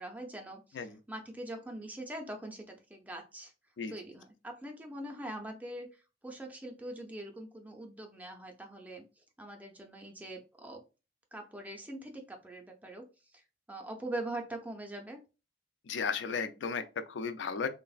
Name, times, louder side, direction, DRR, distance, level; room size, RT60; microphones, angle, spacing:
voice 1, 0.0-3.5 3.9-5.9 6.2-9.0 9.4-10.8 11.3-13.1 13.3-13.4 13.7-15.2, right 1 dB, 10° right, 0.4 m, -42 dB
voice 2, 15.9-17.7, left 5 dB, 85° left, 0.4 m, -34 dB
3.2 x 2.0 x 2.3 m
head